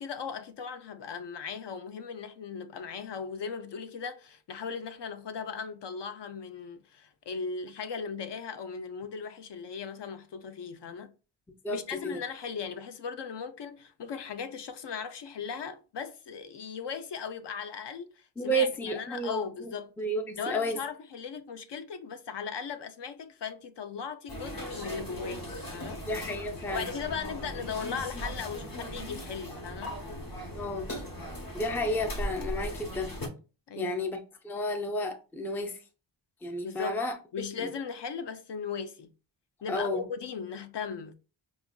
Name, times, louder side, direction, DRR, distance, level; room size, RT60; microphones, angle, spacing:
voice 1, 0.0-11.1 11.7-19.9 20.4-26.0 26.7-30.1 33.7-34.0 36.6-37.0 37.3-39.1 39.6-41.2, left 6 dB, 60° left, 0.5 m, -38 dB
voice 2, 11.6-12.2 18.4-20.8 25.1-25.2 26.1-26.9 30.5-30.9 31.5-33.1 33.7-35.8 36.4-37.1 37.6-37.7 39.7-40.1, equal, 5° left, 0.3 m, -32 dB
sound 1, 24.3-33.3, equal, 45° left, 1.0 m, -38 dB
4.9 x 2.4 x 2.2 m
wide cardioid pair, 115°, 49 cm